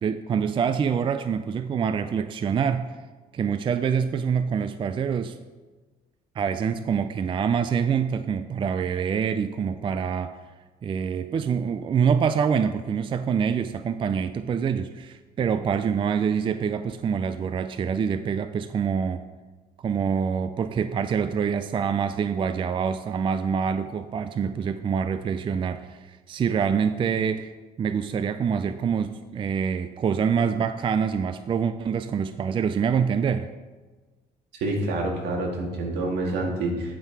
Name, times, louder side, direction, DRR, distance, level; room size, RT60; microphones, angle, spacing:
voice 1, 0.0-2.9 3.3-5.4 6.4-10.4 10.8-19.3 19.8-27.5 27.8-33.5, right 7 dB, 30° right, 11 dB, 0.4 m, -25 dB
voice 2, 34.5-37.0, right 2 dB, 75° right, 1 dB, 2.0 m, -27 dB
9.8 x 5.6 x 4.5 m, 1.3 s
cardioid pair, 110°, 17 cm